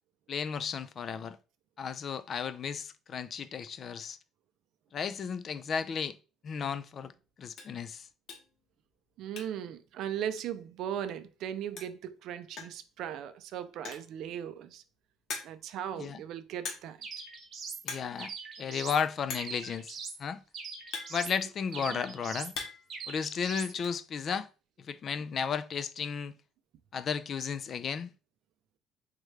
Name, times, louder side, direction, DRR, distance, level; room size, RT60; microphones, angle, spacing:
voice 1, 0.3-1.4 1.8-4.2 4.9-6.2 6.4-7.1 7.4-8.1 16.0-16.2 17.8-18.3 18.6-19.9 20.2-20.4 21.1-22.5 23.1-24.5 24.8-26.3 26.9-28.1, left 6 dB, 40° left, 0.3 m, -34 dB
sound 1, 7.2-7.3 7.5-7.8 8.3-8.6 8.9-9.7 10.0-10.1 10.4-10.5 11.5-11.6 11.8-12.1 12.6-12.9 13.7-14.2 14.7-14.8 15.3-15.8 16.6-17.1 17.3-17.5 17.8-18.2 18.4-18.5 19.3-19.6 20.4-21.7 22.2-23.0 23.2-23.9, left 4 dB, 55° left, 1.0 m, -41 dB
voice 2, 9.2-14.8 15.4-17.0 21.9-22.0, right 10 dB, 65° right, 0.4 m, -38 dB
sound 2, 17.0-17.8 18.2-19.0 19.4-20.2 20.5-21.4 21.7-22.6 22.9-23.7, right 5 dB, 45° right, 0.8 m, -42 dB
3.6 x 3.2 x 3.1 m
cardioid pair, 135°, 0 cm